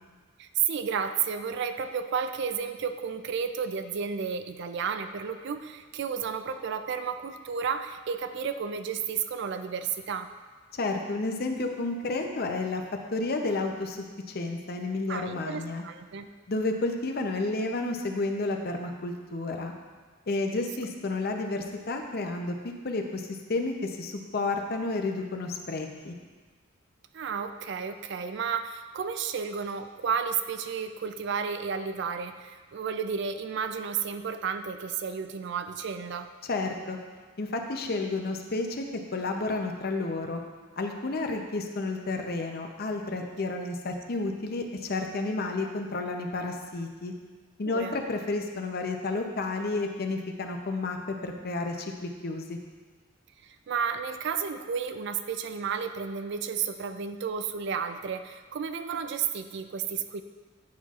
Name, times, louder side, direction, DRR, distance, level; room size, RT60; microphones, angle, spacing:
voice 1, 0.4-10.3 15.1-16.3 20.5-20.6 27.1-36.3 43.2-43.6 43.9-44.0 47.7-48.0 53.4-60.2, right 6 dB, 60° right, 9 dB, 0.4 m, -32 dB
voice 2, 10.7-12.8 13.1-15.8 16.5-19.7 20.3-22.6 22.8-26.1 36.4-37.0 37.4-38.8 39.1-40.4 40.8-47.1 47.6-52.6, left 3 dB, 50° left, 4 dB, 0.6 m, -31 dB
9.3 x 5.6 x 2.4 m, 1.4 s
head